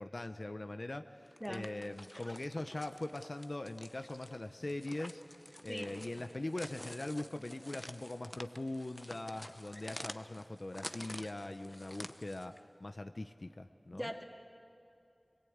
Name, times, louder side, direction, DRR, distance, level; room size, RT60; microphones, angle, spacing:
voice 1, 0.0-5.2 5.6-14.1, left 2 dB, 55° left, 8 dB, 0.7 m, -41 dB
sound 1, 1.3-12.6, left 1 dB, 15° left, 0.8 m, -50 dB
voice 2, 13.9-14.2, equal, ahead, 4 dB, 1.8 m, -40 dB
21.5 x 19.0 x 8.7 m, 2.7 s
wide cardioid pair, 55°, 0 cm